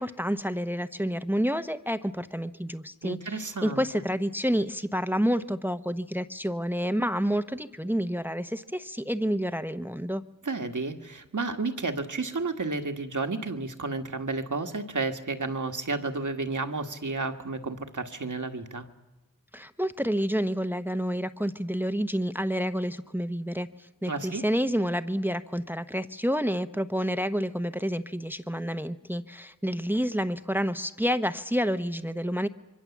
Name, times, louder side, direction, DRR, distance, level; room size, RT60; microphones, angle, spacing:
voice 1, 0.0-10.2 19.5-32.5, equal, 5° right, 10 dB, 0.9 m, -29 dB
voice 2, 3.0-3.8 10.4-18.8 24.1-24.4, right 3 dB, 65° right, 5 dB, 1.8 m, -32 dB
26.5 x 23.5 x 7.3 m, 1.1 s
wide cardioid pair, 45°, 33 cm